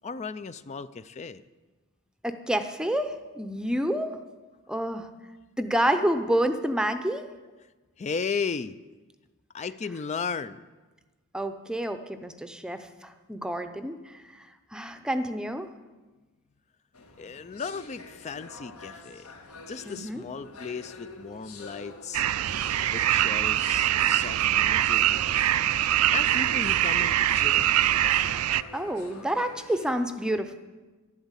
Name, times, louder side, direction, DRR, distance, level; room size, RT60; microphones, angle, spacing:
voice 1, 0.0-1.4 8.0-8.8 9.5-10.6 17.2-19.3 19.7-22.2 22.8-25.1 26.1-27.7, left 5 dB, 30° left, 14 dB, 0.4 m, -35 dB
voice 2, 2.2-4.2 4.7-5.1 5.6-7.3 11.3-14.2 14.7-15.7 19.9-20.2 27.9-28.0 28.7-30.6, right 1 dB, 5° right, 8 dB, 0.7 m, -28 dB
sound 1, 16.9-30.1, left 3 dB, 75° left, 1.7 m, -47 dB
sound 2, 22.1-28.6, right 12 dB, 75° right, 0.4 m, -23 dB
12.0 x 11.0 x 8.1 m, 1.2 s
head